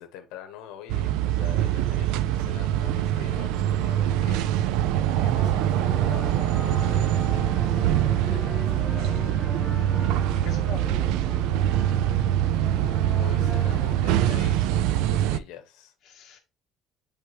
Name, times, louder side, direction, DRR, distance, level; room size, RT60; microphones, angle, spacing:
voice 1, 0.0-4.6 4.8-9.7 13.1-15.9, left 10 dB, 80° left, 1.0 m, -45 dB
sound 1, 0.9-15.4, right 11 dB, 80° right, 0.4 m, -24 dB
sound 2, 5.4-13.9, left 3 dB, 10° left, 0.3 m, -40 dB
voice 2, 9.7-11.1 16.0-16.4, left 5 dB, 35° left, 1.6 m, -43 dB
8.2 x 3.5 x 3.3 m
cardioid pair, 180°, 0 cm